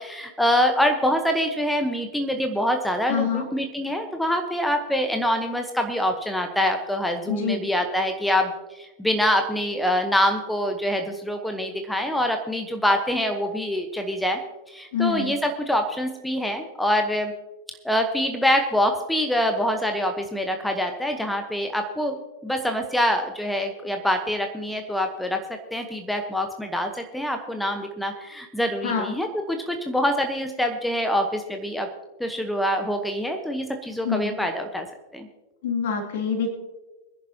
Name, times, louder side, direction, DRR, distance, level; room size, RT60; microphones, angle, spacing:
voice 1, 0.0-14.4 14.7-17.3 17.8-22.1 22.4-25.4 25.7-31.9 32.2-34.9 35.1-35.3, equal, 5° left, 5 dB, 1.1 m, -25 dB
voice 2, 3.1-3.4 7.3-7.6 14.9-15.4 28.8-29.1 34.0-34.4 35.6-36.5, left 6 dB, 55° left, 2 dB, 2.6 m, -25 dB
23.5 x 10.5 x 2.9 m, 1.2 s
figure-of-eight pair, 90°, 0 cm